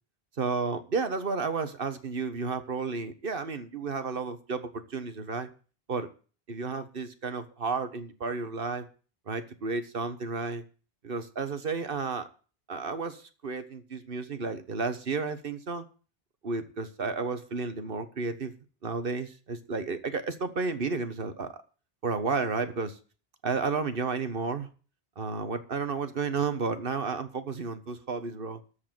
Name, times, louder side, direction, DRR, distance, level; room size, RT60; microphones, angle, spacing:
voice 1, 0.4-5.5 5.9-6.1 6.5-8.8 9.3-10.6 11.0-12.3 12.7-15.8 16.4-18.5 18.8-21.5 22.0-23.0 23.4-24.7 25.2-28.6, right 4 dB, 60° right, 10 dB, 1.4 m, -32 dB
14.0 x 4.9 x 8.9 m, 0.38 s
omnidirectional pair, 1.1 m